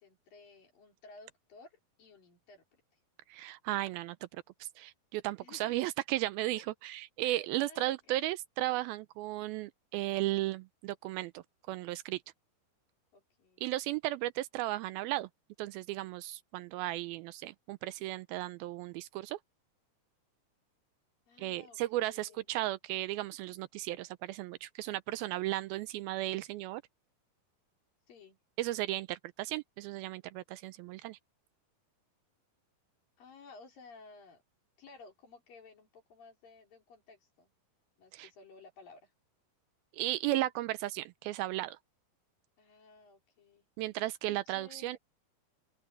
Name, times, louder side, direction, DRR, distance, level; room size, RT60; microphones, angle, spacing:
voice 1, 0.0-2.8 5.4-5.9 6.6-6.7 7.2-8.3 13.1-13.7 21.3-22.5 28.1-28.4 33.2-34.4 34.8-37.5 38.0-39.1 42.6-43.7 44.3-45.0, left 4 dB, 60° left, 6.2 m, -56 dB
voice 2, 3.3-12.2 13.6-15.3 15.6-19.4 21.4-26.8 28.6-31.2 38.1-38.3 39.9-41.8 43.8-45.0, right 16 dB, 80° right, 2.4 m, -35 dB
open air
omnidirectional pair, 4.5 m